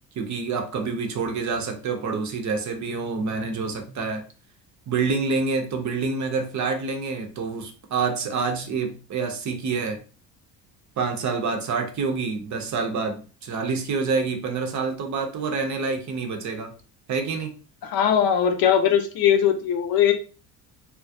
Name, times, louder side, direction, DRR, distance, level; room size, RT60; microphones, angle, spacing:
voice 1, 0.2-4.2 4.9-10.0 11.0-16.7 17.1-17.5, right 4 dB, 40° right, 0.6 m, -27 dB
voice 2, 17.8-20.1, left 9 dB, 55° left, 0.6 m, -20 dB
2.3 x 2.0 x 2.6 m
hypercardioid pair, 65°, 43 cm